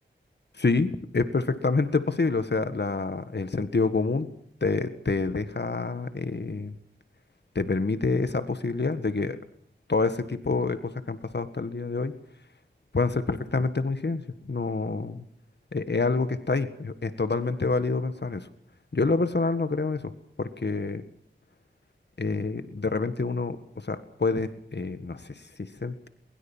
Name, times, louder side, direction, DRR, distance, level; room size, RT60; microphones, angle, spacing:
voice 1, 0.6-4.3 4.6-6.7 7.5-9.4 9.9-12.1 12.9-15.2 15.7-18.5 18.9-20.1 20.4-21.0 22.2-26.1, left 3 dB, 60° left, 11 dB, 1.7 m, -27 dB
22.5 x 21.5 x 7.4 m, 0.65 s
wide cardioid pair, 55°, 20 cm